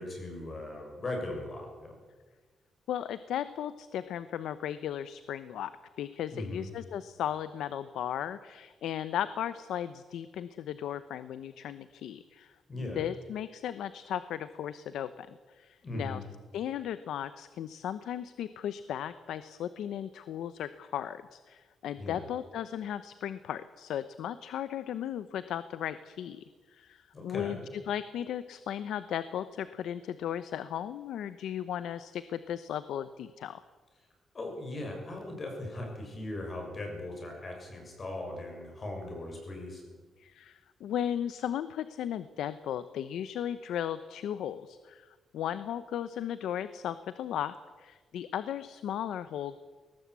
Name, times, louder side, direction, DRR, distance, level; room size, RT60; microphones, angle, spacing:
voice 1, 0.0-2.0 6.3-6.7 12.7-13.0 15.8-16.2 22.0-22.2 27.1-27.6 34.3-39.8, left 2 dB, 30° left, 2 dB, 7.0 m, -39 dB
voice 2, 2.9-5.7 6.0-12.5 12.8-16.2 16.5-33.6 40.2-49.6, left 10 dB, 85° left, 13 dB, 0.9 m, -36 dB
21.5 x 18.5 x 8.4 m, 1.4 s
cardioid pair, 160°, 0 cm